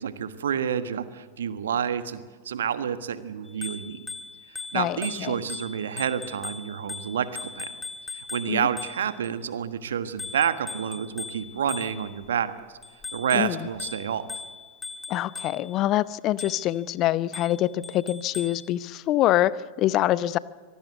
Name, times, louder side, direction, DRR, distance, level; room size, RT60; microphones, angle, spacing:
voice 1, 0.0-4.0 4.7-7.7 8.1-12.5 13.1-14.3, right 8 dB, 65° right, 12 dB, 1.4 m, -29 dB
Bicycle bell, 3.5-9.3 10.2-12.3 12.8-15.8 16.4-16.8 17.3-18.7, left 4 dB, 15° left, 1.7 m, -39 dB
voice 2, 4.7-5.4 8.5-8.7 13.3-13.6 15.1-20.4, left 14 dB, 35° left, 19 dB, 0.7 m, -25 dB
25.0 x 19.0 x 8.2 m, 1.5 s
figure-of-eight pair, 90°, 0 cm